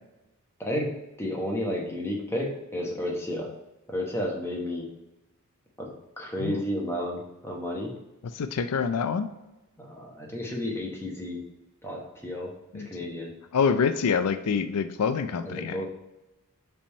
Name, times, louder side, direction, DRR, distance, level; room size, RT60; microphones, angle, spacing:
voice 1, 0.6-3.5 3.9-4.9 5.8-7.9 9.8-11.4 11.8-13.4 15.4-15.9, left 1 dB, 10° left, -1 dB, 0.9 m, -32 dB
voice 2, 8.3-9.3 12.7-12.9 13.5-15.8, left 6 dB, 85° left, 10 dB, 0.4 m, -26 dB
5.1 x 3.5 x 5.3 m, 0.98 s
head